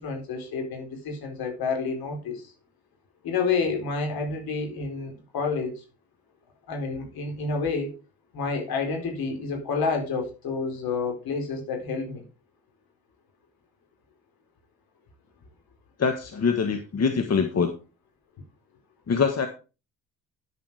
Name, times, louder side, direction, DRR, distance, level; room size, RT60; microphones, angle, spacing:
voice 1, 0.0-2.5 3.2-5.8 6.7-7.9 8.3-12.2, left 4 dB, 65° left, 4.3 m, -29 dB
voice 2, 16.0-17.7 19.1-19.5, left 5 dB, 40° left, 1.6 m, -24 dB
11.0 x 7.4 x 4.9 m
supercardioid pair, 60°, 39 cm